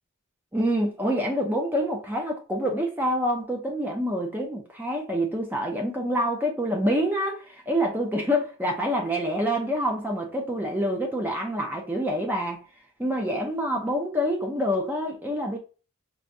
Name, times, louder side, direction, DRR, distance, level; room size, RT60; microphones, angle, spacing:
voice 1, 0.5-12.6 13.0-15.6, equal, 10° right, 0.5 m, -26 dB
4.6 x 2.2 x 2.6 m
head